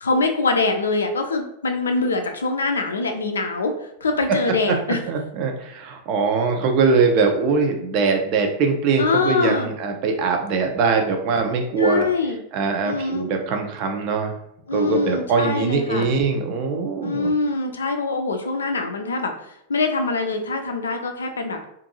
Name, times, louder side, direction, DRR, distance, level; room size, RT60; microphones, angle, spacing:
voice 1, 0.0-3.7 4.0-5.0 9.0-9.7 11.8-12.4 12.8-13.3 14.7-16.1 17.0-19.3 19.7-21.6, left 3 dB, 70° left, 5 dB, 0.4 m, -23 dB
voice 2, 5.1-12.1 12.5-14.3 14.7-17.3, right 4 dB, 40° right, 4 dB, 0.5 m, -22 dB
2.6 x 2.5 x 2.7 m, 0.76 s
figure-of-eight pair, 90°, 0 cm